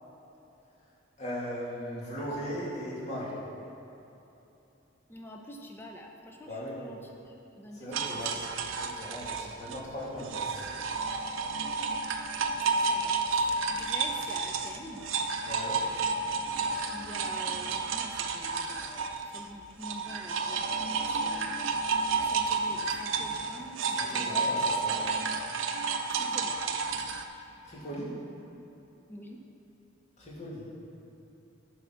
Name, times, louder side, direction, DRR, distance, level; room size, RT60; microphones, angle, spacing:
voice 1, 1.2-3.4 6.5-6.8 7.7-10.7 15.4-15.8 24.0-25.0 27.6-28.2 30.2-30.7, equal, 35° left, -7 dB, 2.3 m, -38 dB
voice 2, 5.1-8.4 12.8-15.1 16.6-24.7 26.1-26.6 29.1-29.4, equal, 10° left, 1 dB, 0.6 m, -47 dB
sound 1, 7.9-19.5 19.8-27.2, right 4 dB, 80° right, 0.6 m, -31 dB
11.5 x 4.8 x 5.8 m, 3.0 s
head